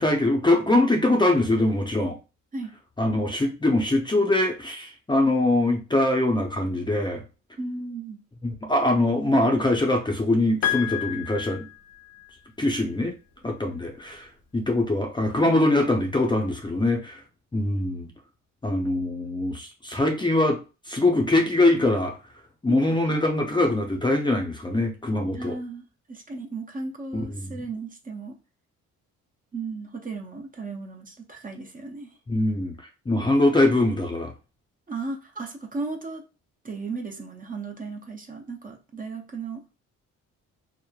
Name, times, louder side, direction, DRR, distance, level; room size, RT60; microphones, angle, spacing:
voice 1, 0.0-2.2 3.0-7.2 8.4-11.7 12.6-13.1 13.4-14.3 14.5-17.2 17.5-18.1 18.6-20.6 20.9-22.2 22.6-25.6 27.1-27.6 32.3-32.7 33.1-34.3, left 2 dB, 15° left, 3 dB, 0.5 m, -23 dB
voice 2, 7.6-8.2 22.7-22.9 25.3-28.4 29.5-32.1 34.9-36.2 36.6-39.6, right 3 dB, 30° right, 3 dB, 0.6 m, -35 dB
Piano, 10.6-12.3, left 12 dB, 65° left, 0.6 m, -30 dB
3.0 x 2.1 x 2.3 m, 0.30 s
cardioid pair, 90°, 30 cm